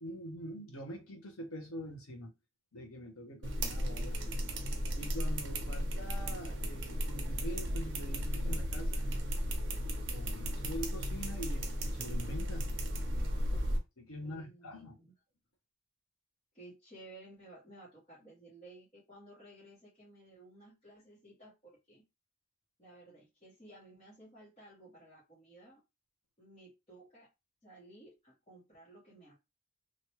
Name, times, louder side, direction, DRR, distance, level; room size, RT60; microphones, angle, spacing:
voice 1, 0.0-2.3 2.7-4.4 5.0-9.0 10.1-12.7 14.0-15.0, equal, 85° left, 1.1 m, -44 dB
sound 1, 3.4-13.8, equal, 55° right, 0.8 m, -35 dB
voice 2, 14.2-15.1 16.5-22.1 22.8-25.8 26.4-27.3 27.6-29.4, right 1 dB, 25° left, 1.2 m, -56 dB
3.1 x 2.5 x 3.0 m
head